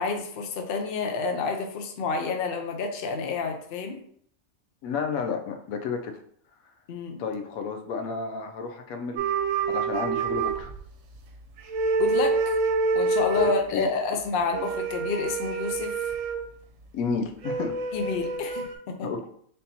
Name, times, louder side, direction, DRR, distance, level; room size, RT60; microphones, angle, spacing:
voice 1, 0.0-4.0 6.9-7.2 12.0-12.6 12.9-16.1 17.9-19.3, left 4 dB, 55° left, 4 dB, 0.7 m, -29 dB
voice 2, 4.8-6.1 7.2-9.3 9.7-10.7 13.4-13.9 16.9-17.8 19.0-19.3, left 5 dB, 85° left, 5 dB, 1.0 m, -31 dB
sound 1, 9.2-11.2 11.6-13.6 14.5-16.4 17.4-18.7, right 3 dB, 70° right, 0.9 m, -27 dB
3.6 x 2.7 x 4.1 m, 0.62 s
omnidirectional pair, 1.4 m